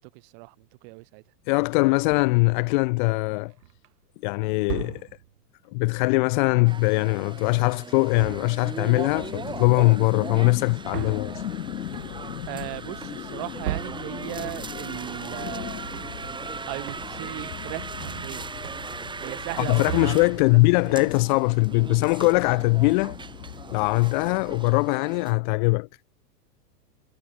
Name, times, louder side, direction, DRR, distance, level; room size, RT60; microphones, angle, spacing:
voice 1, 0.8-1.2 12.5-15.8 16.7-18.4 19.2-20.2 20.5-20.6 20.8-21.1, right 40 dB or more, 40° right, 3.4 m, -37 dB
voice 2, 1.5-3.5 4.2-5.0 5.7-11.3 19.6-23.2 23.7-25.9, left 28 dB, 30° left, 0.7 m, -21 dB
sound 1, 2.1-2.6 3.3-3.9 4.6-5.4 8.0-8.8 9.1-9.6 10.4-15.0 15.4-16.6 16.9-17.4 17.6-19.2 19.5-20.6, right 13 dB, 70° right, 1.8 m, -38 dB
sound 2, 6.6-25.3, right 5 dB, 10° right, 3.7 m, -39 dB
sound 3, 9.1-24.7, left 11 dB, 80° left, 2.4 m, -39 dB
hypercardioid pair, 145°, 49 cm